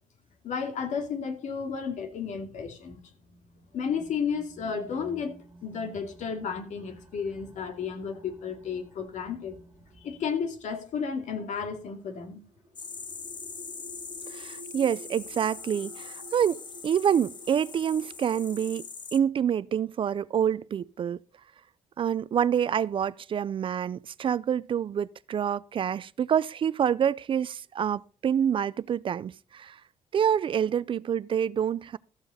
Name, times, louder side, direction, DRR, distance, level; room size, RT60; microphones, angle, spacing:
voice 1, 0.4-3.0 3.7-5.4 5.6-9.6 10.0-12.4, left 6 dB, 70° left, 2.4 m, -33 dB
sound 1, 3.1-18.8, right 1 dB, 20° right, 5.2 m, -52 dB
sound 2, 12.8-19.2, left 5 dB, 35° left, 1.1 m, -42 dB
voice 2, 14.3-18.9 19.1-21.2 22.0-29.8 30.1-32.0, right 8 dB, 40° right, 0.4 m, -27 dB
14.0 x 7.9 x 4.2 m
cardioid pair, 135°, 13 cm